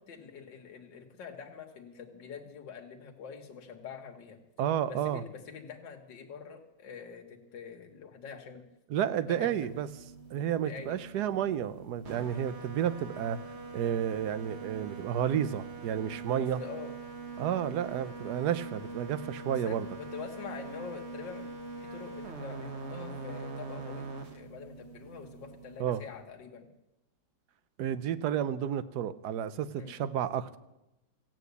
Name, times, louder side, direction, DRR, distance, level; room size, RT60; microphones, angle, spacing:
voice 1, 0.0-4.4 4.9-8.6 9.2-9.7 10.6-10.9 13.1-13.3 16.4-16.9 19.5-21.5 21.8-26.7 29.7-30.0, left 6 dB, 70° left, 2 dB, 2.1 m, -45 dB
voice 2, 4.6-5.2 8.9-9.9 10.3-13.4 13.7-16.6 17.4-19.9 25.8-26.0 27.8-30.6, right 9 dB, 65° right, 14 dB, 1.2 m, -31 dB
sound 1, 9.1-26.4, right 4 dB, 40° right, 1.4 m, -43 dB
15.0 x 9.1 x 8.2 m, 0.93 s
omnidirectional pair, 2.0 m